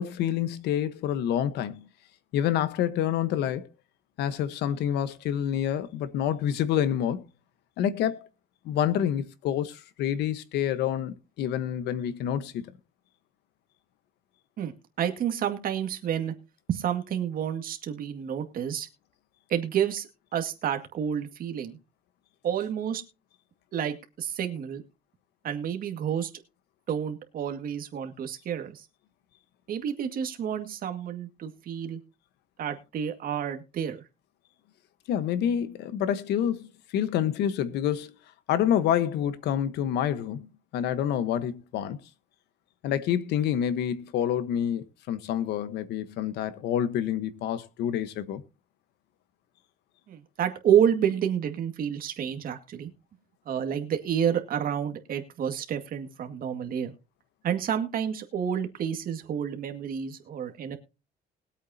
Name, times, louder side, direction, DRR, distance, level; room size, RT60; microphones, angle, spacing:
voice 1, 0.0-1.9 2.3-3.7 4.2-7.2 7.8-8.2 8.6-12.7 35.1-38.1 38.5-42.0 42.8-48.4, left 10 dB, 80° left, 1.2 m, -28 dB
voice 2, 15.0-16.3 16.7-18.9 19.5-20.1 20.3-21.8 22.4-23.0 23.7-24.8 25.4-26.3 26.9-28.9 29.7-32.0 32.6-34.0 50.1-52.9 53.5-56.9 57.4-60.8, right 9 dB, 60° right, 2.0 m, -29 dB
21.0 x 8.3 x 2.8 m
cardioid pair, 110°, 17 cm